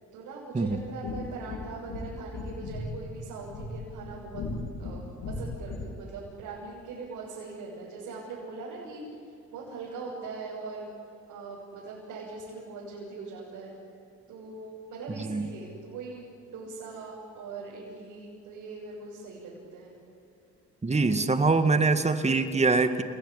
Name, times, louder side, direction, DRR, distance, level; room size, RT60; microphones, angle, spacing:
voice 1, 0.1-4.4 4.8-9.2 9.5-10.9 11.3-13.8 14.3-19.9 20.9-21.2, right 4 dB, 90° right, -4 dB, 6.9 m, -41 dB
sound 1, 0.8-6.0, left 2 dB, 80° left, 3.9 m, -38 dB
voice 2, 20.8-23.0, right 3 dB, 20° right, 9 dB, 2.1 m, -24 dB
29.5 x 20.0 x 9.9 m, 2.6 s
cardioid pair, 90°, 30 cm